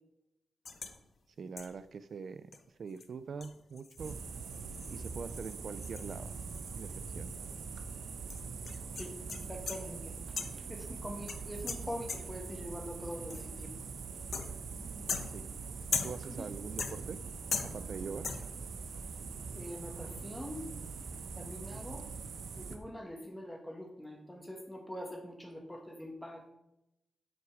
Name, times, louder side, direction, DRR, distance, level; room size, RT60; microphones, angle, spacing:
sound 1, 0.6-1.0 1.6-1.9 2.5-2.6 3.0-3.1 3.4-7.2 7.4-7.5 8.3-9.9 10.4-10.7 11.3-12.5 13.3-13.6 14.3-14.7 15.1-16.4 16.8-17.2 17.5-18.0 18.2-18.6, left 5 dB, 50° left, 0.9 m, -40 dB
voice 1, 1.4-2.5 2.8-4.2 4.9-6.4 6.8-7.3 15.3-15.4 16.0-17.2 17.6-18.3, right 5 dB, 55° right, 13 dB, 0.4 m, -43 dB
sound 2, 4.0-22.8, right 5 dB, 80° right, 1.1 m, -43 dB
voice 2, 8.9-10.1 10.7-13.7 14.7-15.1 16.3-16.5 19.5-20.7 21.4-22.0 22.6-26.5, equal, 5° left, 2 dB, 1.8 m, -44 dB
8.4 x 8.1 x 4.9 m, 0.87 s
wide cardioid pair, 140°, 0 cm